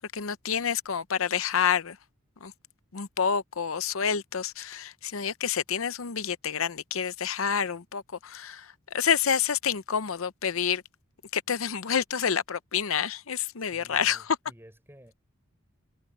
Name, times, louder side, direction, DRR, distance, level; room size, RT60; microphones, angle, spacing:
voice 1, 0.1-2.0 2.4-2.5 2.9-10.8 11.3-14.4, left 7 dB, 70° left, 0.7 m, -28 dB
voice 2, 13.6-15.1, equal, 10° right, 5.5 m, -53 dB
head